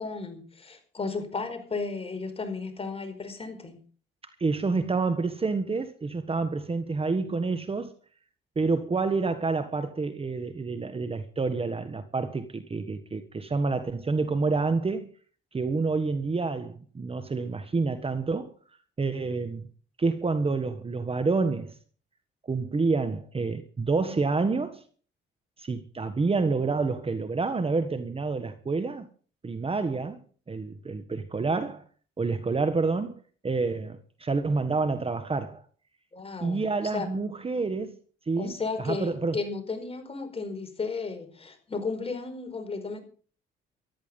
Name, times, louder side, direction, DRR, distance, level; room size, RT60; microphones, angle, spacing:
voice 1, 0.0-3.8 36.1-37.1 38.4-43.0, left 4 dB, 30° left, 5.0 m, -34 dB
voice 2, 4.4-7.9 8.5-15.1 15.5-18.5 19.0-19.7 20.0-21.7 22.5-24.8 25.6-29.1 29.4-30.2 30.5-31.8 32.2-33.1 33.4-35.6 36.4-38.0 38.3-39.4, right 4 dB, 30° right, 1.5 m, -28 dB
14.5 x 13.0 x 5.4 m
cardioid pair, 90°, 20 cm